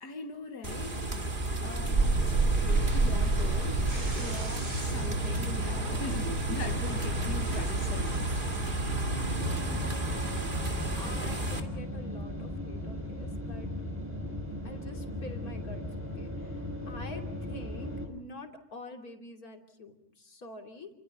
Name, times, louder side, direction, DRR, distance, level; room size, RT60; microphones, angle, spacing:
voice 1, 0.0-8.5, left 5 dB, 90° left, 2.1 m, -42 dB
sound 1, 0.6-11.6, right 2 dB, 30° right, 2.6 m, -30 dB
sound 2, 1.9-9.5, right 1 dB, 80° right, 5.8 m, -34 dB
voice 2, 9.1-10.2 11.0-13.7 14.6-15.8 16.2-16.6 16.9-20.9, left 2 dB, 65° left, 3.5 m, -46 dB
sound 3, 9.3-18.1, left 1 dB, 5° right, 5.6 m, -37 dB
30.0 x 26.5 x 5.7 m
omnidirectional pair, 1.7 m